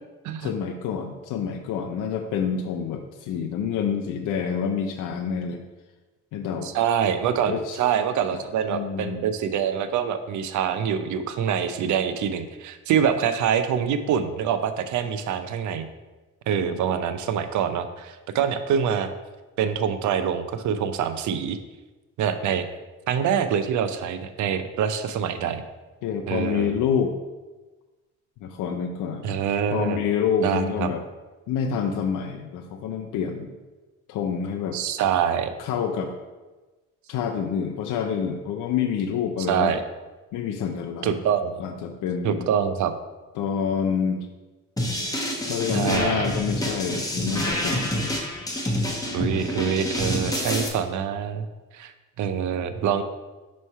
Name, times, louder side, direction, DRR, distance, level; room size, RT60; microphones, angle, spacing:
voice 1, 0.4-5.6 6.3-6.7 7.5-7.8 8.3-8.4 8.7-9.2 16.6-16.8 26.0-27.2 28.4-29.4 29.7-31.0 31.5-33.5 34.1-34.8 35.6-36.1 37.1-39.8 40.3-41.2 41.6-42.5 43.4-44.3 45.5-48.2, left 7 dB, 80° left, 3 dB, 0.6 m, -27 dB
voice 2, 6.6-15.9 16.5-19.1 19.6-21.6 22.2-22.7 23.1-25.6 26.3-26.7 29.2-30.0 30.4-30.9 34.7-35.5 39.5-39.8 41.0-41.5 42.2-42.9 45.7-46.3 49.1-51.5 51.7-51.9 52.2-53.0, right 8 dB, 75° right, 10 dB, 0.6 m, -25 dB
sound 1, 44.8-50.7, left 1 dB, 10° left, 1.1 m, -27 dB
5.5 x 3.2 x 5.5 m, 1.2 s
cardioid pair, 90°, 30 cm